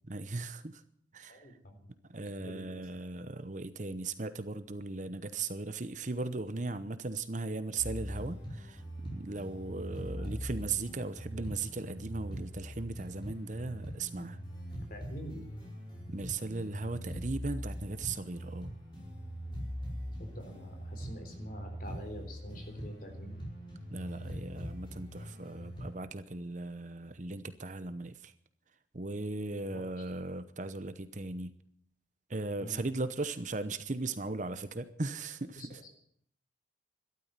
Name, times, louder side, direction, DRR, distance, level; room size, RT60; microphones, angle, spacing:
voice 1, 0.1-0.8 1.1-1.5 2.1-14.4 16.1-18.7 23.9-28.3 28.9-31.5 32.3-35.8, right 3 dB, 40° right, 12 dB, 0.8 m, -38 dB
voice 2, 1.3-1.9 2.4-2.8 10.2-10.3 14.9-15.4 20.2-23.4 29.7-30.1 32.6-32.8 35.6-35.9, equal, 45° left, 5 dB, 3.7 m, -46 dB
sound 1, 7.8-25.9, equal, 25° left, 5.4 m, -42 dB
13.0 x 12.5 x 8.2 m, 0.66 s
head